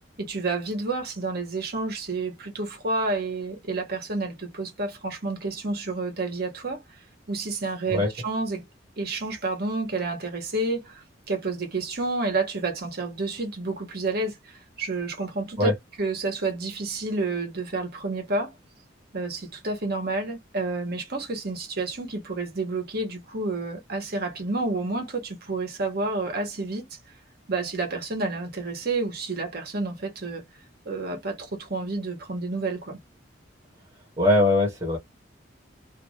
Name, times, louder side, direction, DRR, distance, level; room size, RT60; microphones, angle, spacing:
voice 1, 0.2-6.8 7.3-8.6 9.0-15.7 16.0-18.5 19.1-26.8 27.5-30.4 30.8-33.0, right 3 dB, 55° right, 1.4 m, -30 dB
voice 2, 34.2-35.0, left 1 dB, 25° right, 1.3 m, -21 dB
3.0 x 2.6 x 3.1 m
head